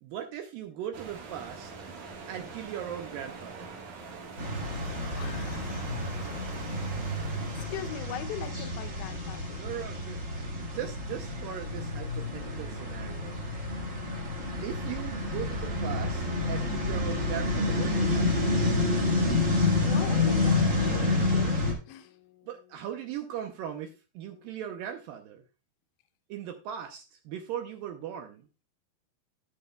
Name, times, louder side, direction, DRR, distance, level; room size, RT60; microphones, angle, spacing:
voice 1, 0.0-1.7 2.3-3.7 9.6-13.4 14.6-18.5 22.5-25.4 26.3-28.4, right 10 dB, 80° right, 2.2 m, -39 dB
sound 1, 0.9-8.0, right 4 dB, 55° right, 2.2 m, -44 dB
sound 2, 4.4-21.7, left 2 dB, 40° right, 1.1 m, -29 dB
voice 2, 5.1-5.7 7.6-9.6 19.8-22.5 24.4-24.5, left 11 dB, 85° left, 1.8 m, -41 dB
13.5 x 6.7 x 2.2 m
omnidirectional pair, 4.5 m